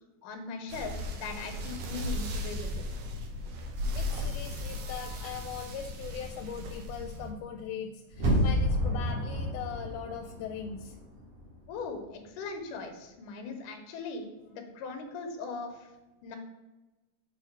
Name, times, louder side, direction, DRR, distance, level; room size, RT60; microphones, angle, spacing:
voice 1, 0.2-2.8 11.7-15.9 16.2-16.4, left 4 dB, 70° left, 4 dB, 2.5 m, -39 dB
sound 1, 0.7-7.3, left 1 dB, 70° right, 2.2 m, -36 dB
voice 2, 3.9-11.0, left 8 dB, 85° left, 4 dB, 2.5 m, -40 dB
sound 2, 8.1-11.1 11.4-11.5, equal, 50° right, 2.0 m, -29 dB
6.6 x 4.2 x 6.1 m, 1.1 s
omnidirectional pair, 4.4 m